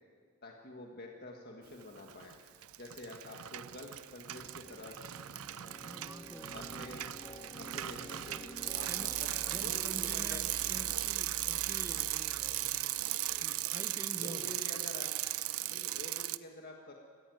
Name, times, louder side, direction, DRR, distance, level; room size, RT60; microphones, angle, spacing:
voice 1, 0.4-2.4 2.8-5.0 6.5-7.1 7.6-9.3 9.6-10.9 13.3-13.6 14.2-15.1 15.7-16.9, left 2 dB, 50° left, 1 dB, 1.6 m, -48 dB
Bicycle, 2.0-2.3 2.6-16.4, right 15 dB, 85° right, 0.5 m, -37 dB
sound 1, 4.3-9.6, left 1 dB, 20° left, 1.2 m, -51 dB
voice 2, 5.8-7.1 8.8-14.6, right 1 dB, 10° right, 7 dB, 0.8 m, -49 dB
sound 2, 6.1-13.5, right 1 dB, 60° right, 3.0 m, -53 dB
21.5 x 15.5 x 9.3 m, 2.1 s
head